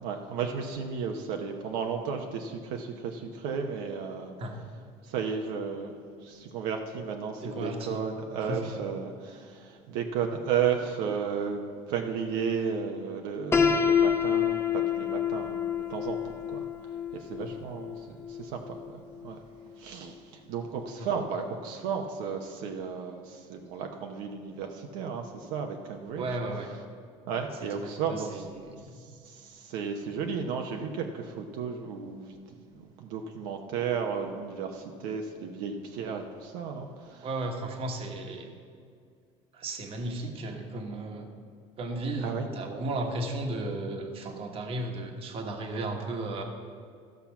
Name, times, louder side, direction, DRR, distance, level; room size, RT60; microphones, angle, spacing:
voice 1, 0.0-4.3 5.0-11.6 11.9-16.2 16.5-19.4 19.8-26.3 27.3-28.4 29.0-32.4 32.7-37.3 42.2-42.5, right 6 dB, 80° right, 3 dB, 0.9 m, -34 dB
voice 2, 7.4-8.0 8.5-8.8 17.4-17.6 21.0-21.1 26.2-26.7 27.5-29.0 37.2-38.6 39.5-41.3 41.8-46.4, right 2 dB, 40° right, 4 dB, 1.3 m, -35 dB
Piano, 13.5-19.4, left 7 dB, 20° left, 0.8 m, -28 dB
13.5 x 5.8 x 5.9 m, 2.2 s
cardioid pair, 130°, 14 cm